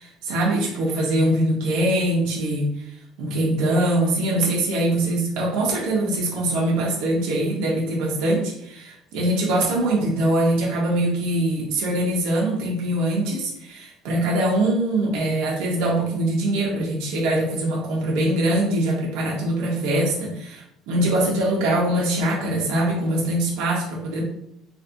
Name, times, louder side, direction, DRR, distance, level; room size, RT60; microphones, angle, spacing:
voice 1, 0.0-24.2, right 1 dB, 75° right, -3 dB, 1.0 m, -23 dB
4.1 x 2.6 x 2.7 m, 0.77 s
cardioid pair, 140°, 0 cm